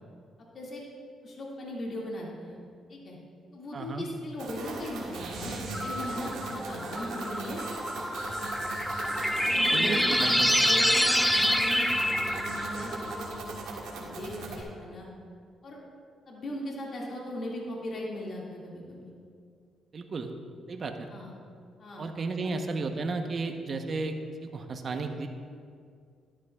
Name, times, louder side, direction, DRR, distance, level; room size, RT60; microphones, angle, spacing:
voice 1, 0.4-0.8 1.2-2.6 2.9-3.2 3.5-7.7 9.4-15.1 15.6-15.8 16.3-19.1 21.1-21.3 21.8-22.0 22.4-22.5, left 1 dB, 50° left, -3 dB, 2.0 m, -38 dB
voice 2, 3.7-4.0 9.7-10.5 19.9-20.3 20.7-21.1 22.0-24.2 24.4-25.3, right 3 dB, 45° right, 5 dB, 0.8 m, -33 dB
sound 1, 4.4-14.6, right 3 dB, 90° right, 1.8 m, -39 dB
sound 2, 5.7-13.9, equal, 5° left, 0.5 m, -27 dB
12.0 x 11.0 x 2.3 m, 2.2 s
cardioid pair, 90°, 0 cm